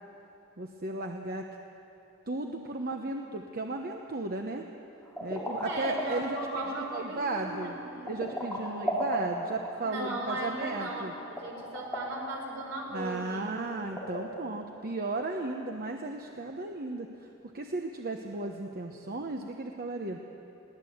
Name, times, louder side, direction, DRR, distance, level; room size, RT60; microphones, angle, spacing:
voice 1, 0.6-1.4 2.3-4.6 5.2-7.8 8.0-11.1 12.9-17.1 17.4-20.2, right 2 dB, 45° right, 3 dB, 1.0 m, -35 dB
sound 1, 5.0-14.5, equal, ahead, 4.3 m, -37 dB
voice 2, 5.6-8.2 9.8-11.1 11.4-13.5, right 1 dB, 70° right, -1 dB, 5.2 m, -37 dB
22.0 x 17.5 x 7.9 m, 2.9 s
head